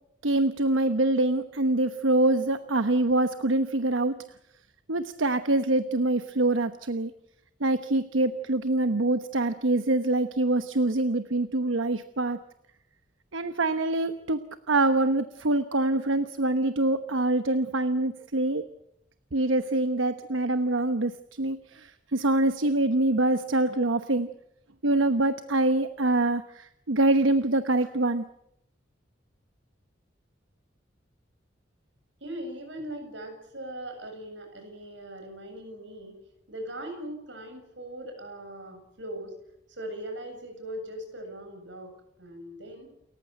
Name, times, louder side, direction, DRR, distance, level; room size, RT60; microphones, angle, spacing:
voice 1, 0.2-4.2 4.9-7.1 7.6-12.4 13.3-14.4 14.7-18.6 19.3-24.3 24.8-28.3, right 2 dB, 90° right, 10 dB, 1.1 m, -25 dB
voice 2, 32.2-36.2 36.5-39.3 39.7-41.9 42.2-42.9, right 1 dB, 70° right, 5 dB, 7.6 m, -40 dB
29.0 x 15.0 x 7.9 m, 0.79 s
head